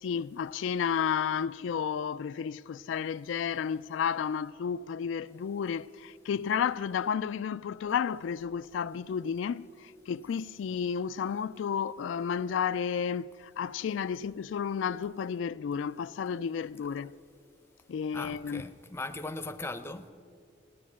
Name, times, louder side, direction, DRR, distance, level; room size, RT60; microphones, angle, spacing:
voice 1, 0.0-17.1 17.9-18.7, left 7 dB, 85° left, 0.3 m, -32 dB
voice 2, 18.1-20.1, left 2 dB, 15° left, 0.6 m, -38 dB
16.0 x 10.0 x 8.5 m
head